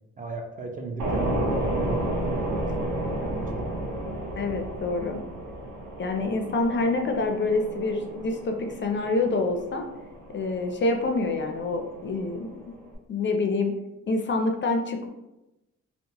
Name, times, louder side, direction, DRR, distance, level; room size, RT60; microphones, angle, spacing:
voice 1, 0.2-3.6, right 3 dB, 25° right, 2 dB, 0.4 m, -37 dB
sound 1, 1.0-13.0, right 1 dB, 65° right, 0.6 m, -32 dB
voice 2, 4.4-5.2 6.0-9.8 10.3-12.5 13.1-13.7 14.1-15.1, left 3 dB, 40° left, 4 dB, 0.4 m, -26 dB
2.8 x 2.1 x 2.8 m, 0.95 s
cardioid pair, 70°, 31 cm